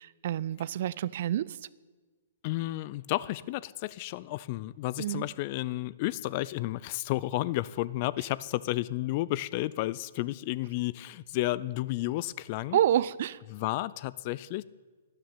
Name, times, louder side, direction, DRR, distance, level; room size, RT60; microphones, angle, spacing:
voice 1, 0.0-1.6 5.0-5.2 12.7-13.4, right 11 dB, 50° right, 21 dB, 0.4 m, -28 dB
voice 2, 2.4-12.8 13.5-14.6, left 17 dB, 40° left, 21 dB, 0.4 m, -32 dB
12.5 x 11.5 x 8.9 m, 1.4 s
figure-of-eight pair, 115°, 0 cm